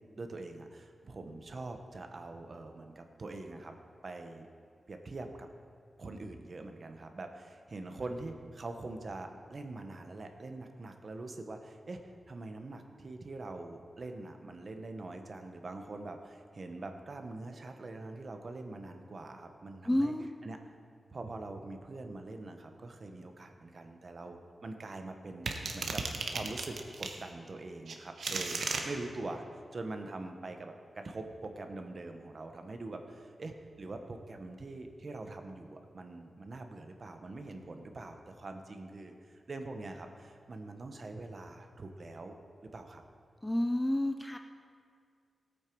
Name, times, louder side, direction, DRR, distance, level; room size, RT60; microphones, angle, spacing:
voice 1, 0.2-3.7 4.0-4.5 4.9-5.5 6.0-20.1 20.4-20.6 21.1-42.4 42.6-43.0, right 2 dB, 40° right, 5 dB, 0.9 m, -44 dB
voice 2, 19.8-20.3 43.4-44.4, left 1 dB, 10° left, 6 dB, 0.4 m, -30 dB
sound 1, 25.5-27.2 27.9-28.8, right 4 dB, 75° right, 1.0 m, -35 dB
17.0 x 8.8 x 4.6 m, 2.2 s
wide cardioid pair, 175°, 0 cm